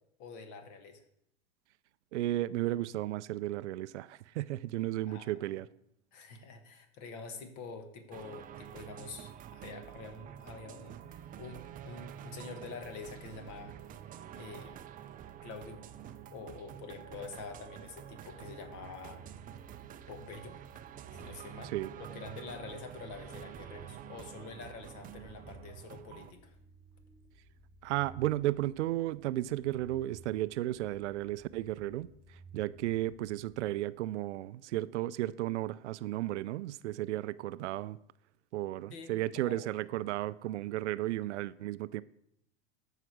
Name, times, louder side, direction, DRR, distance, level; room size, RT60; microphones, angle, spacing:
voice 1, 0.2-1.0 5.1-5.5 6.1-13.8 14.4-14.8 15.4-15.8 16.3-19.2 20.1-20.6 21.1-26.5 38.9-39.7, left 4 dB, 50° left, 1.7 m, -47 dB
voice 2, 2.1-5.7 21.6-21.9 27.8-38.0 38.5-42.0, right 15 dB, 80° right, 0.5 m, -34 dB
sound 1, 8.1-26.3, right 10 dB, 25° right, 0.5 m, -48 dB
drone moaning stiffs, 17.4-34.2, right 3 dB, 20° left, 1.8 m, -57 dB
13.5 x 5.0 x 4.7 m
hypercardioid pair, 110°, 34 cm